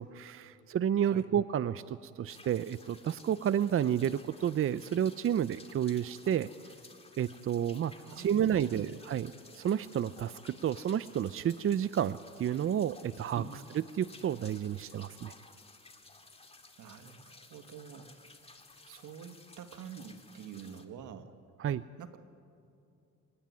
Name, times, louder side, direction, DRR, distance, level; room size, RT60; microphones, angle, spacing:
voice 1, 0.0-6.5 7.2-13.4 14.0-15.3 21.6-21.8, right 9 dB, 45° right, 15 dB, 0.6 m, -31 dB
sound 1, 2.3-20.8, left 3 dB, 20° left, 2.4 m, -56 dB
voice 2, 8.0-8.9 13.3-13.5 16.8-18.1 18.5-18.6 18.8-21.4 22.0-22.2, right 8 dB, 80° right, 8 dB, 1.7 m, -47 dB
25.5 x 19.0 x 9.7 m, 2.6 s
cardioid pair, 90°, 30 cm